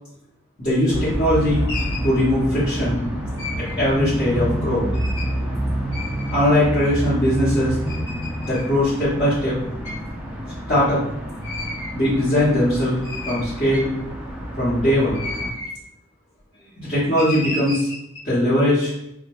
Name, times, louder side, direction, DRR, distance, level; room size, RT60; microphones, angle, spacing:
sound 1, 0.6-0.8 1.1-2.1 3.4-3.7 4.9-5.3 5.9-6.6 7.2-7.3 7.9-8.6 9.8-10.0 11.4-12.0 12.6-12.7 13.0-14.1 15.0-15.8 17.2-18.2, left 2 dB, 75° left, 0.9 m, -33 dB
voice 1, 0.6-1.7 2.0-3.0 3.6-4.9 6.3-7.8 8.4-9.6 10.7-11.0 11.9-13.0 13.3-13.9 14.6-15.2 16.8-17.9 18.2-18.9, left 1 dB, 35° left, -12 dB, 0.9 m, -20 dB
sound 2, 0.9-15.5, right 1 dB, 5° right, 0.4 m, -28 dB
2.2 x 2.1 x 2.8 m, 0.81 s
head